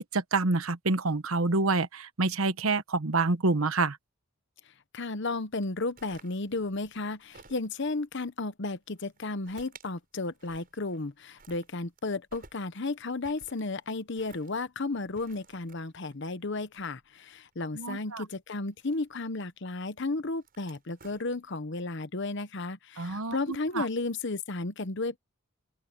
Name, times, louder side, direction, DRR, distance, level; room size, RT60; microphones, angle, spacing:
voice 1, 0.1-4.0 17.7-18.2 23.0-23.8, right 3 dB, 80° right, 1.1 m, -27 dB
voice 2, 4.9-25.2, left 3 dB, 60° left, 1.0 m, -33 dB
sound 1, 5.6-8.0 8.9-9.9 10.2-11.1 11.4-17.5 18.6-19.4 20.2-21.8, right 4 dB, 45° right, 7.9 m, -56 dB
open air
head